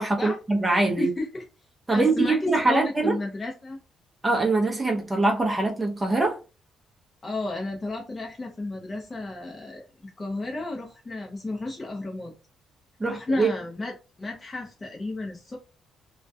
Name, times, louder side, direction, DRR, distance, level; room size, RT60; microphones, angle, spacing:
voice 1, 0.0-1.1 1.9-3.1 4.2-6.4 13.0-13.5, right 3 dB, 20° right, 0.5 m, -23 dB
voice 2, 1.0-1.4 1.9-3.8 7.2-12.3 13.0-15.6, left 2 dB, 25° left, 0.5 m, -32 dB
2.3 x 2.2 x 2.6 m
cardioid pair, 90°, 0 cm